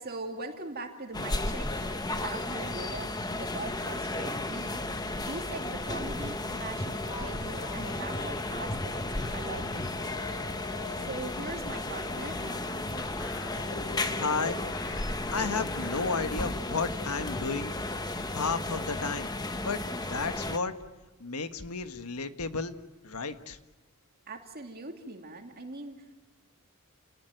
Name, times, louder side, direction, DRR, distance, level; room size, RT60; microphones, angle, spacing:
voice 1, 0.0-4.8 5.2-9.1 9.3-10.0 11.1-12.4 24.3-26.1, right 2 dB, 45° right, 3 dB, 2.6 m, -41 dB
sound 1, 1.1-20.6, left 2 dB, 15° left, 1.1 m, -34 dB
sound 2, 6.9-11.3 11.7-16.5, left 5 dB, 60° left, 1.4 m, -46 dB
voice 2, 14.2-14.6 15.1-17.7 18.3-19.3 19.6-19.8 20.1-20.7 21.2-22.7 23.0-23.6, left 4 dB, 80° left, 9 dB, 1.4 m, -32 dB
29.5 x 19.0 x 9.2 m, 1.2 s
head